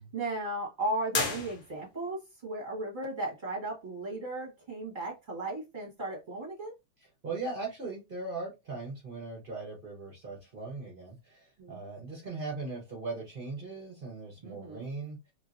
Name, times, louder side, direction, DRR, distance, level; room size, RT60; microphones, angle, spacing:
voice 1, 0.0-6.7 11.6-11.8 14.4-14.9, right 2 dB, 25° right, 1.2 m, -36 dB
sound 1, 1.1-2.1, left 4 dB, 55° left, 0.9 m, -33 dB
voice 2, 7.2-15.2, right 3 dB, 40° right, 0.7 m, -39 dB
3.1 x 2.9 x 2.5 m
omnidirectional pair, 2.4 m